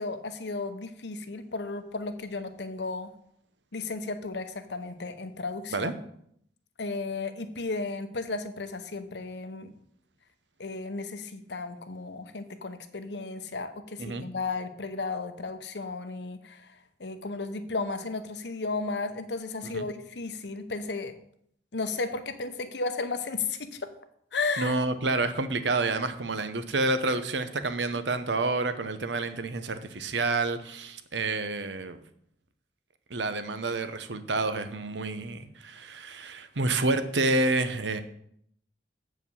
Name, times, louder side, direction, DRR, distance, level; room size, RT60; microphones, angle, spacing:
voice 1, 0.0-3.1 3.7-5.9 6.8-9.7 10.6-21.1 21.7-23.9 24.3-24.8, left 3 dB, 70° left, 0.9 m, -34 dB
voice 2, 24.6-32.0 33.1-38.0, right 2 dB, 80° right, 0.9 m, -29 dB
8.2 x 4.9 x 7.2 m
head